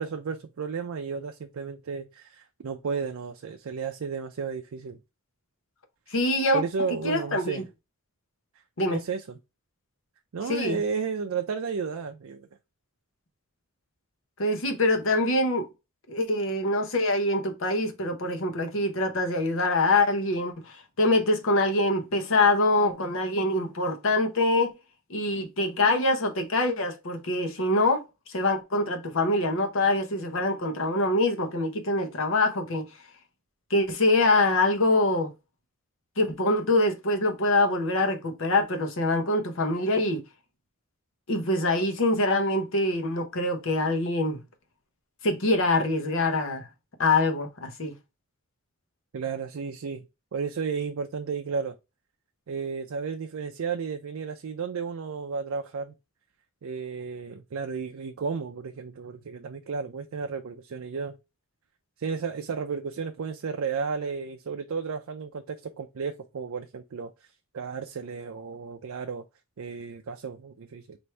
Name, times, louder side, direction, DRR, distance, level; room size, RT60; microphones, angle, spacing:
voice 1, 0.0-5.0 6.1-6.2 6.5-7.6 8.9-9.2 10.3-12.5 49.1-50.1 50.3-51.7 52.5-55.9 56.6-61.2 62.0-67.1 67.5-69.2 69.6-71.0, right 5 dB, 70° right, 0.4 m, -33 dB
voice 2, 6.1-6.6 7.0-7.6 8.8-9.0 10.5-10.8 14.4-15.7 16.1-24.7 25.1-28.0 28.3-32.9 33.7-35.3 36.2-40.2 41.3-44.4 45.2-46.7 47.0-47.9, left 2 dB, 60° left, 0.8 m, -24 dB
4.4 x 2.6 x 3.2 m
head